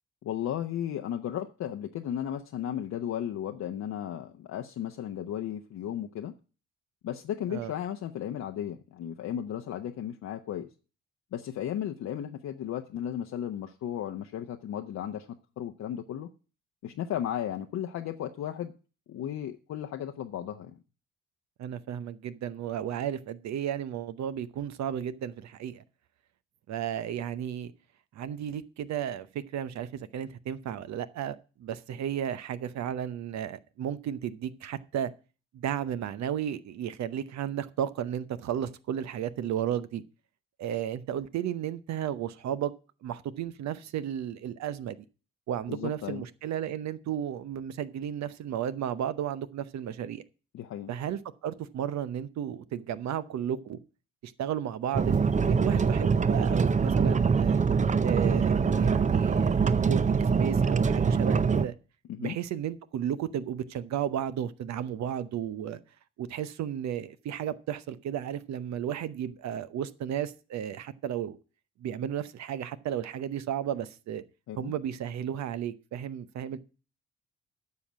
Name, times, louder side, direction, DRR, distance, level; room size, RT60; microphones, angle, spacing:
voice 1, 0.2-6.3 7.0-10.7 11.3-15.3 15.6-16.3 16.8-18.7 19.1-20.8 45.7-46.3 50.5-50.9 62.1-62.4 74.5-74.7, left 10 dB, 60° left, 0.9 m, -35 dB
voice 2, 21.6-25.8 26.7-27.7 28.1-35.1 35.5-40.0 40.6-42.7 43.0-45.0 45.5-50.2 50.9-53.8 54.2-57.6 58.0-61.7 62.2-65.8 66.2-71.4 71.8-74.2 74.6-76.6, right 9 dB, 65° right, 0.8 m, -33 dB
sound 1, 54.9-61.7, right 5 dB, 25° right, 0.6 m, -24 dB
9.7 x 5.8 x 7.4 m
supercardioid pair, 55°, 30 cm